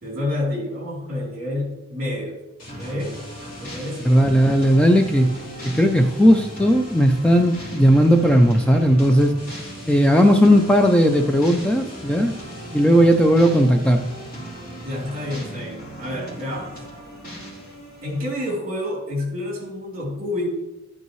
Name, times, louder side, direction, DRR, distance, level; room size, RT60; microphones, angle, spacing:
voice 1, 0.0-2.3 2.8-3.2 3.6-4.2 14.8-16.7 18.0-20.5, left 1 dB, 40° right, -2 dB, 3.4 m, -28 dB
sound 1, 2.6-15.7, equal, 75° left, 3.0 m, -40 dB
sound 2, 2.7-18.2, right 1 dB, 40° left, 3.7 m, -39 dB
voice 2, 4.0-5.3 5.6-9.3 9.8-12.3 12.7-14.0, equal, 5° left, 4 dB, 0.4 m, -16 dB
12.5 x 8.1 x 3.1 m, 1.0 s
head